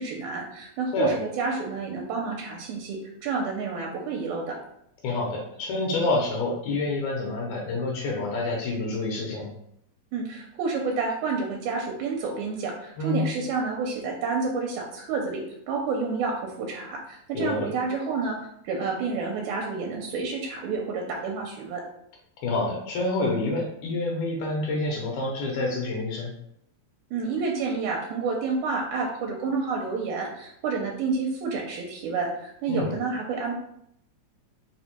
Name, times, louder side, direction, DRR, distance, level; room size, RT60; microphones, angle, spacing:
voice 1, 0.0-4.6 10.1-21.8 27.1-33.5, right 4 dB, 85° right, 0 dB, 1.9 m, -29 dB
voice 2, 5.0-9.5 13.0-13.2 17.3-17.7 22.4-26.3 32.7-32.9, left 2 dB, 85° left, -2 dB, 2.1 m, -27 dB
4.7 x 2.1 x 2.9 m, 0.73 s
omnidirectional pair, 3.4 m